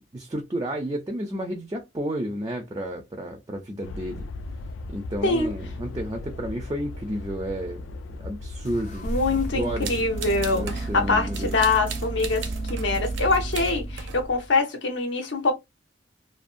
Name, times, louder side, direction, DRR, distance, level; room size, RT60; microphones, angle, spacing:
voice 1, 0.1-4.3 4.9-7.8 8.1-9.1 9.5-10.1 10.5-11.5, right 1 dB, 20° right, 0.3 m, -31 dB
sound 1, 3.8-10.8, left 2 dB, 90° left, 0.3 m, -38 dB
sound 2, 8.6-14.5, right 2 dB, 40° left, 0.5 m, -32 dB
voice 2, 9.0-10.6 10.9-15.5, left 3 dB, 75° left, 0.7 m, -24 dB
sound 3, 9.8-11.0 11.3-14.2, right 7 dB, 80° right, 0.5 m, -38 dB
2.5 x 2.1 x 2.4 m
head